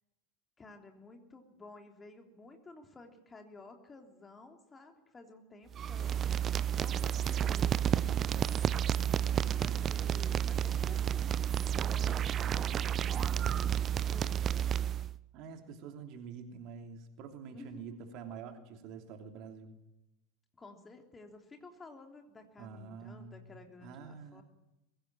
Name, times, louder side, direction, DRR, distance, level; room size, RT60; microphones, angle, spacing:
voice 1, 0.6-6.2 6.5-8.6 9.6-11.4 11.9-13.7 14.1-14.5 17.5-18.1 20.6-24.4, left 3 dB, 20° left, 4 dB, 3.3 m, -53 dB
sound 1, 5.7-15.1, right 9 dB, 30° right, 0.7 m, -31 dB
voice 2, 9.4-10.2 15.3-19.8 22.6-23.5 23.8-24.4, right 6 dB, 45° right, 5 dB, 3.0 m, -47 dB
22.0 x 16.5 x 9.0 m, 0.94 s
figure-of-eight pair, 85°, 0 cm